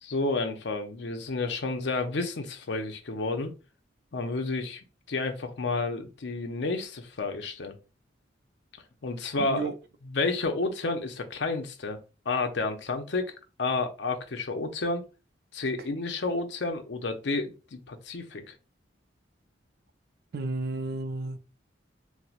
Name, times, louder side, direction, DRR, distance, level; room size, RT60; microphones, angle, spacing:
voice 1, 0.0-3.5 4.1-4.8 5.1-7.8 9.0-9.7 10.0-12.0 12.3-13.3 13.6-15.0 15.5-18.4, left 3 dB, 70° left, 0.6 m, -30 dB
voice 2, 9.4-9.7 20.3-21.4, right 3 dB, 60° right, 0.4 m, -32 dB
4.3 x 2.1 x 2.4 m
head